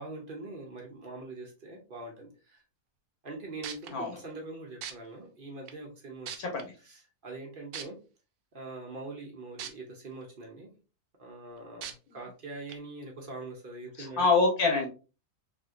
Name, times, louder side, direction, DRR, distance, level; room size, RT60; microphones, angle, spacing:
voice 1, 0.0-2.6 3.2-6.3 6.8-8.0 8.5-10.7 11.2-14.3, right 2 dB, 45° right, 0 dB, 0.7 m, -43 dB
sound 1, 3.3-3.4 3.6-3.9 4.8-4.9 5.7-5.8 6.3-6.6 7.7-7.8 9.6-9.7 10.2-10.3 11.8-11.9 12.7-12.8, right 8 dB, 80° right, 1.1 m, -38 dB
voice 2, 14.0-14.9, left 3 dB, 75° left, 1 dB, 1.3 m, -25 dB
3.4 x 2.7 x 2.4 m, 0.32 s
omnidirectional pair, 1.6 m